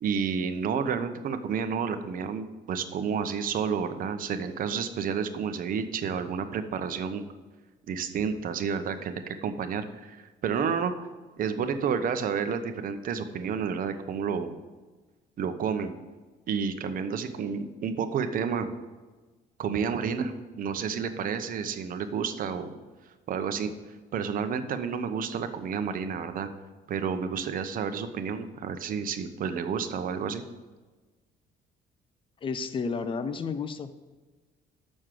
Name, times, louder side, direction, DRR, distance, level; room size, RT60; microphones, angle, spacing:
voice 1, 0.0-7.2 7.9-10.9 11.4-14.5 15.4-15.9 16.5-18.7 19.6-22.8 23.3-23.7 24.1-26.5 26.9-30.4, right 6 dB, 55° right, 9 dB, 0.9 m, -30 dB
voice 2, 32.4-34.1, left 5 dB, 30° left, 10 dB, 0.6 m, -32 dB
6.5 x 6.4 x 7.5 m, 1.3 s
cardioid pair, 110°, 17 cm